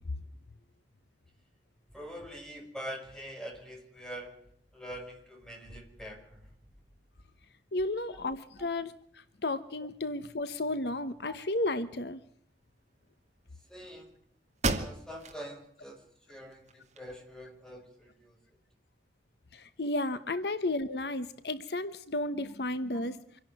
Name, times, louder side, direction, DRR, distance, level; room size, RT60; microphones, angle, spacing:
voice 1, 1.9-4.4 4.7-6.4 8.1-8.2 8.6-8.7 11.3-11.4 13.7-14.1 14.7-16.0 16.3-18.4 22.9-23.0, equal, 5° left, 2 dB, 4.7 m, -44 dB
voice 2, 7.7-12.2 19.5-23.2, left 2 dB, 65° left, 12 dB, 1.0 m, -33 dB
sound 1, 14.0-14.1 14.6-15.4 15.9-16.0 16.5-17.4, right 3 dB, 40° right, 2.3 m, -34 dB
26.0 x 11.5 x 9.3 m, 0.68 s
head